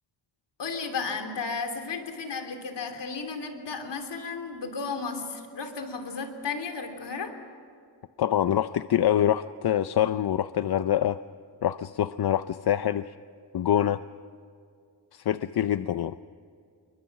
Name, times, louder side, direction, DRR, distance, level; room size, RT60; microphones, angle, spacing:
voice 1, 0.6-7.3, left 4 dB, 80° left, 6 dB, 3.2 m, -34 dB
voice 2, 8.2-11.2 11.6-13.1 13.5-14.0 15.1-16.2, left 10 dB, 65° left, 12 dB, 0.6 m, -25 dB
28.5 x 23.5 x 6.0 m, 2.3 s
wide cardioid pair, 130°, 41 cm